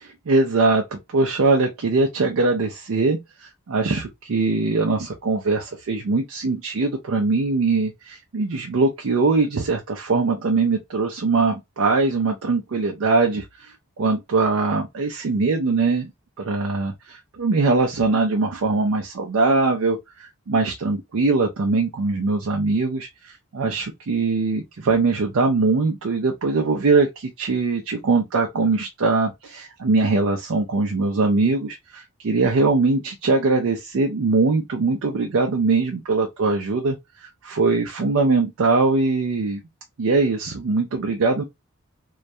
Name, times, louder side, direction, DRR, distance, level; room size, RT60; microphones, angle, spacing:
voice 1, 0.3-16.1 16.4-39.6 40.0-41.4, right 3 dB, 60° right, 0.4 m, -22 dB
2.2 x 2.1 x 2.6 m
head